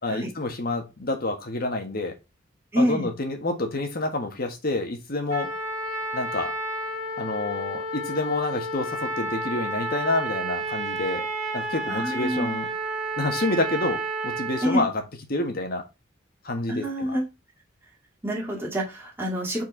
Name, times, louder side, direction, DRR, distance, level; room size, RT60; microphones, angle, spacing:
voice 1, 0.0-2.2 2.7-5.5 6.1-6.5 7.2-11.3 11.5-12.7 13.2-15.0 15.3-15.8 16.4-17.1, left 2 dB, 50° left, 1.5 m, -28 dB
voice 2, 2.7-3.1 11.9-12.5 14.6-14.8 16.7-17.3 18.2-19.6, equal, 10° right, 2.2 m, -26 dB
Trumpet, 5.3-14.8, right 2 dB, 40° right, 2.7 m, -31 dB
5.0 x 4.6 x 4.4 m
head